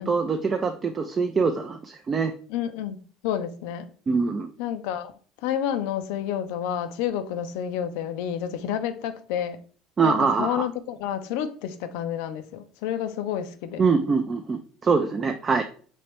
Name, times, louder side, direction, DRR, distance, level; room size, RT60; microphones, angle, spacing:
voice 1, 0.0-2.3 4.1-4.5 10.0-10.7 13.8-15.6, right 5 dB, 30° right, 0.4 m, -24 dB
voice 2, 2.5-3.0 3.2-3.9 4.6-5.1 5.4-9.6 10.0-13.8, left 9 dB, 65° left, 0.4 m, -29 dB
3.1 x 2.9 x 3.1 m
hypercardioid pair, 65°, 0 cm